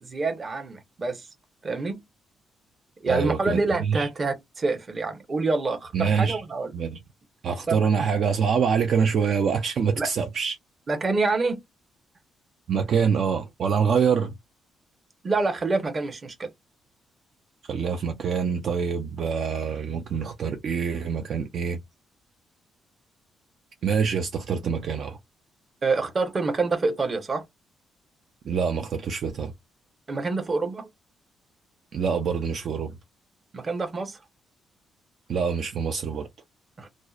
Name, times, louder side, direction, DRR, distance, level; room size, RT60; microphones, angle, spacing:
voice 1, 0.0-1.2 1.6-2.0 3.0-6.7 7.7-7.8 10.0-10.1 10.9-11.6 15.2-16.5 25.8-27.4 30.1-30.9 33.5-34.2 36.8-36.9, right 3 dB, 35° right, 0.8 m, -26 dB
voice 2, 3.1-4.1 5.9-6.4 6.7-7.0 7.4-10.6 12.7-14.3 17.6-21.8 23.8-25.2 28.5-29.5 31.9-32.9 35.3-36.3, right 6 dB, 60° right, 0.4 m, -25 dB
2.6 x 2.0 x 2.3 m
cardioid pair, 90°, 0 cm